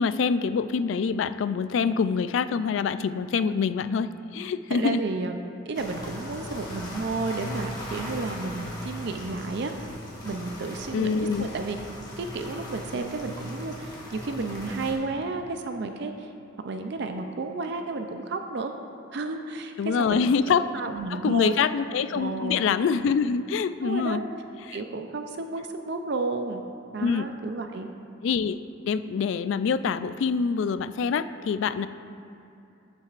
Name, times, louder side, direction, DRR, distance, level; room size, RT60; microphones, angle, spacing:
voice 1, 0.0-5.0 10.9-11.5 19.8-20.7 21.1-24.2 24.7-24.8 27.0-27.3 28.2-28.6 28.9-31.9, left 5 dB, 65° left, 13 dB, 0.3 m, -25 dB
voice 2, 4.7-5.4 5.7-9.7 10.2-11.8 12.2-16.3 16.6-18.7 19.1-20.2 20.6-21.5 22.1-22.6 23.8-24.2 24.7-26.6 26.9-27.9, right 3 dB, 55° right, 6 dB, 0.5 m, -32 dB
sound 1, 5.7-14.9, left 1 dB, 20° left, 1.4 m, -38 dB
14.0 x 7.4 x 2.5 m, 2.8 s
head